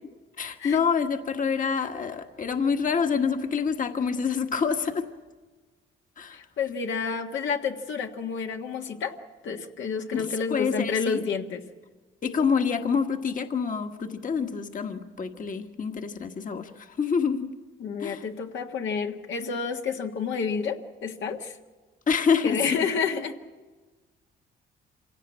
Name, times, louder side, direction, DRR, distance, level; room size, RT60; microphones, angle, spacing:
voice 1, 0.4-5.1 6.2-6.4 10.1-11.2 12.2-17.5 18.0-18.2 22.1-22.8, left 6 dB, 40° left, 6 dB, 1.5 m, -27 dB
voice 2, 6.3-9.1 9.4-11.6 17.8-21.5 22.4-23.4, left 5 dB, 70° left, 3 dB, 1.6 m, -30 dB
26.0 x 17.0 x 8.6 m, 1.3 s
cardioid pair, 90°, 20 cm